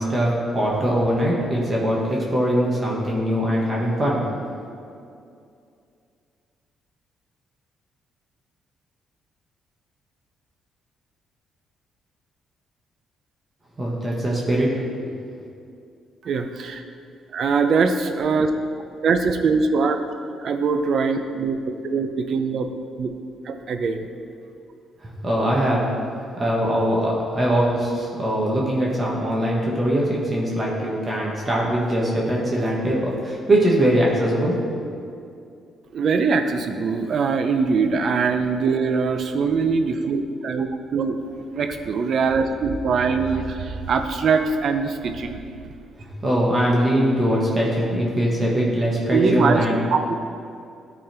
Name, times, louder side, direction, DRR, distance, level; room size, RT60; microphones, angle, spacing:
voice 1, 0.0-4.4 13.8-14.7 15.0-15.1 25.0-25.9 26.4-34.8 46.0-49.8, equal, 25° right, -4 dB, 1.7 m, -22 dB
voice 2, 16.2-16.8 17.3-18.5 19.0-20.0 20.4-22.7 23.0-23.1 23.4-24.1 35.9-41.2 41.5-45.7 49.1-49.6 49.9-50.1, right 5 dB, 60° right, 7 dB, 0.7 m, -22 dB
12.5 x 4.3 x 4.5 m, 2.4 s
cardioid pair, 90°, 0 cm